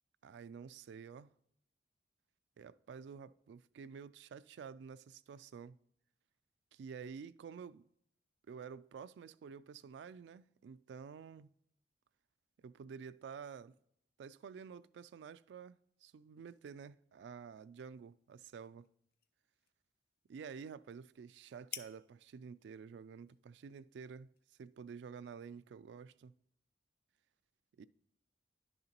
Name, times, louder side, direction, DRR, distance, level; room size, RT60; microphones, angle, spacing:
voice 1, 0.2-1.3 2.6-5.8 6.7-7.8 8.5-11.5 12.6-13.8 14.2-18.9 20.3-24.3 24.6-26.3 27.8-27.9, right 6 dB, 75° right, 0.3 m, -50 dB
sound 1, 17.4-25.1, left 10 dB, 60° left, 0.5 m, -57 dB
10.5 x 6.6 x 2.9 m
head